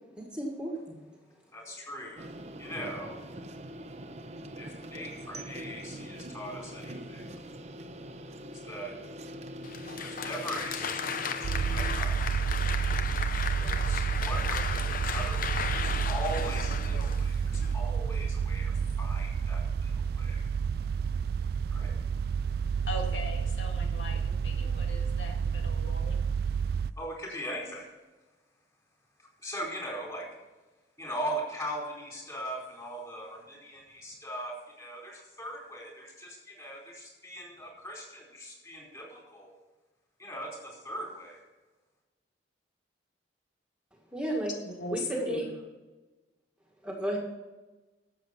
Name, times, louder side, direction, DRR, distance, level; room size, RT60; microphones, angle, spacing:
voice 1, 0.2-1.0 44.1-44.5 44.9-45.5 46.8-47.2, right 1 dB, 5° right, 0 dB, 1.9 m, -33 dB
voice 2, 1.5-2.3 2.6-3.2 4.6-7.2 8.7-8.9 10.0-12.4 13.6-20.4 21.7-21.9 27.0-27.9 29.4-30.3 31.0-39.5 40.2-41.4, equal, 20° left, -2 dB, 4.5 m, -40 dB
sound 1, 2.2-12.0, equal, 40° right, 0.9 m, -43 dB
Applause, 9.6-17.7, left 6 dB, 50° left, 0.8 m, -35 dB
sound 2, 11.4-26.9, right 6 dB, 60° right, 0.3 m, -30 dB
voice 3, 22.9-26.2 44.6-45.5, left 1 dB, 85° left, 2 dB, 2.1 m, -38 dB
13.0 x 7.6 x 5.8 m, 1.2 s
head